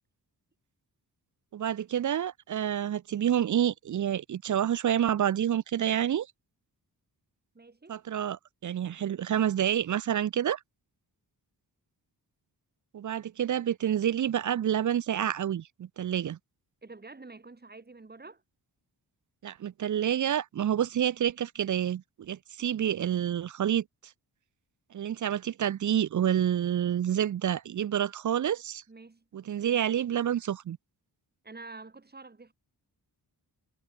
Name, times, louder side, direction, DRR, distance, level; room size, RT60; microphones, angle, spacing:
voice 1, 1.5-6.3 7.9-10.6 12.9-16.4 19.4-23.8 24.9-28.8 29.3-30.8, right 10 dB, 50° right, 0.5 m, -28 dB
voice 2, 7.5-8.0 16.8-18.4 28.9-29.8 31.4-32.5, right 3 dB, 25° right, 5.1 m, -48 dB
wide cardioid pair, 160°, 41 cm